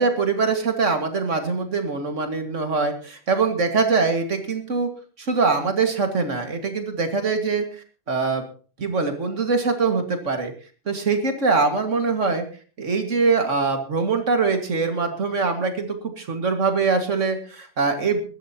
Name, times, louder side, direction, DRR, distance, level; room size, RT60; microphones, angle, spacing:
voice 1, 0.0-4.9 5.2-8.4 8.8-10.5 10.9-12.4 12.8-18.2, right 4 dB, 85° right, 6 dB, 2.4 m, -23 dB
20.5 x 13.5 x 2.9 m, 0.37 s
omnidirectional pair, 1.2 m